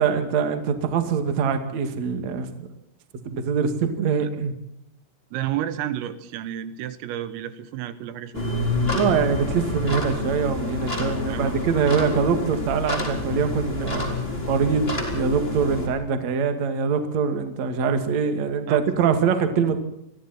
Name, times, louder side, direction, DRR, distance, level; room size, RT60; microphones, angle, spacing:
voice 1, 0.0-2.7 3.2-4.5 8.9-14.2 14.5-14.9 15.1-19.8, right 6 dB, 45° right, 7 dB, 2.5 m, -23 dB
voice 2, 5.3-8.5 11.3-11.6 18.7-19.1, right 11 dB, 80° right, 13 dB, 3.9 m, -31 dB
sound 1, 8.3-15.9, left 2 dB, 15° left, 3.5 m, -28 dB
29.5 x 22.5 x 4.4 m, 0.76 s
omnidirectional pair, 6.0 m